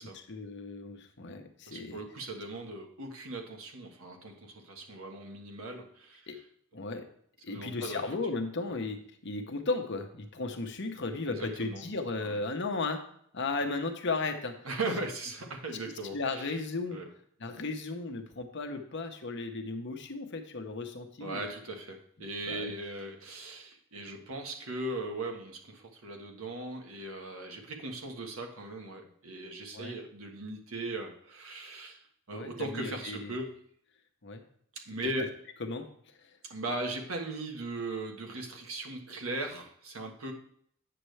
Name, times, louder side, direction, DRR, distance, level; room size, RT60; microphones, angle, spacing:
voice 1, 0.3-2.0 6.3-6.4 6.7-7.1 7.4-13.0 13.3-14.6 15.8-17.0 17.4-21.4 22.4-22.7 29.7-30.0 32.3-33.4 34.2-34.4 35.6-35.9 36.2-36.3, left 3 dB, 60° left, 5 dB, 1.0 m, -35 dB
voice 2, 1.7-6.3 7.5-8.0 11.3-11.8 12.2-12.4 14.6-16.5 16.9-17.1 21.2-32.0 32.3-33.6 34.7-35.2 36.5-40.3, right 2 dB, 85° right, 3 dB, 1.4 m, -38 dB
8.6 x 6.7 x 3.3 m, 0.64 s
head